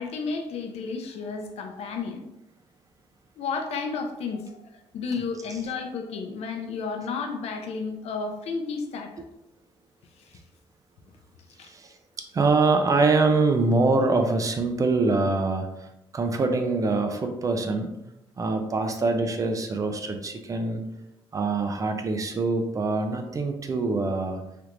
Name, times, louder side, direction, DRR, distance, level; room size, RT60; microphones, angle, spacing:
voice 1, 0.0-2.2 3.4-4.6 4.9-9.1 11.6-11.7, left 4 dB, 80° left, 4 dB, 0.5 m, -32 dB
voice 2, 11.6-12.0 12.3-17.9 18.4-20.8 21.3-24.4, right 3 dB, 35° right, 5 dB, 0.4 m, -24 dB
3.4 x 2.4 x 2.9 m, 0.88 s
cardioid pair, 115°, 10 cm